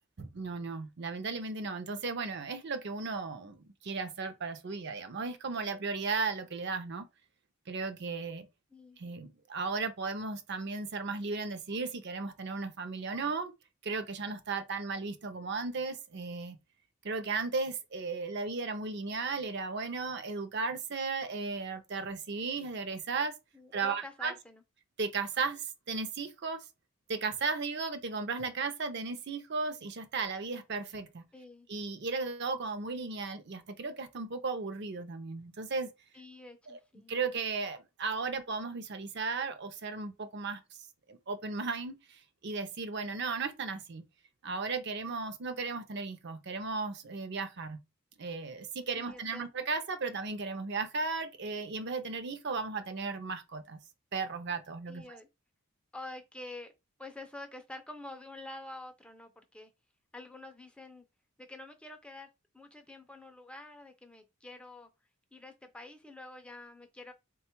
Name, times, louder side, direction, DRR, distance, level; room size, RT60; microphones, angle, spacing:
voice 1, 0.2-3.6 3.8-7.1 7.7-8.5 9.0-13.5 13.8-16.6 17.0-23.4 23.7-24.3 25.0-26.6 27.1-31.3 31.7-35.9 36.7-36.8 37.1-40.6 41.1-44.1 44.4-47.8 48.2-53.8 54.1-55.2, right 4 dB, 50° right, 0.5 m, -35 dB
voice 2, 23.5-24.6 31.3-31.7 36.1-37.2 48.9-49.5 54.9-55.3 55.9-56.7 57.0-59.7 60.1-61.0 61.4-64.9 65.3-67.1, left 2 dB, 5° left, 0.4 m, -47 dB
3.7 x 2.3 x 4.4 m
head